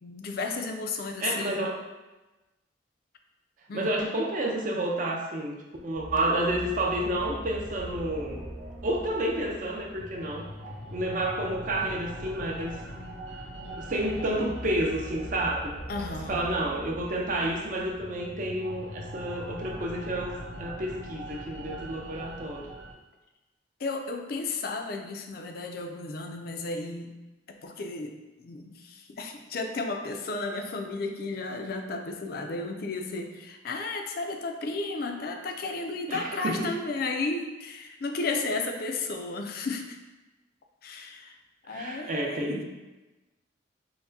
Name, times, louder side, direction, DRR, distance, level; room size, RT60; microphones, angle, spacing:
voice 1, 0.0-1.7 3.7-3.9 15.9-16.4 23.8-27.2 27.6-40.0 40.8-41.3 41.7-42.6, left 3 dB, 50° left, 4 dB, 0.4 m, -33 dB
voice 2, 1.2-1.8 3.7-5.6 5.8-8.4 8.8-10.5 10.9-12.8 13.7-15.7 16.3-22.7 36.1-36.7 41.7-42.6, right 1 dB, 45° right, 0 dB, 0.5 m, -30 dB
sound 1, 5.9-22.9, equal, 65° right, 0.9 m, -41 dB
5.7 x 2.1 x 2.6 m, 1.1 s
head